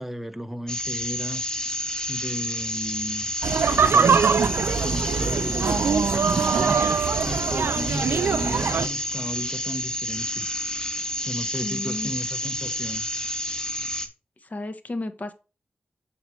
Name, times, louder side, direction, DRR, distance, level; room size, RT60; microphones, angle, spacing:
voice 1, 0.0-1.4 2.1-3.3 3.7-6.8 7.2-10.5 11.2-13.1, equal, 5° right, 0.9 m, -34 dB
sound 1, 0.7-14.1, left 1 dB, 20° left, 1.8 m, -30 dB
sound 2, 3.4-8.9, right 6 dB, 80° right, 0.5 m, -22 dB
voice 2, 11.6-12.1 14.4-15.3, left 2 dB, 45° left, 1.1 m, -33 dB
7.0 x 6.7 x 3.2 m
cardioid pair, 45°, 4 cm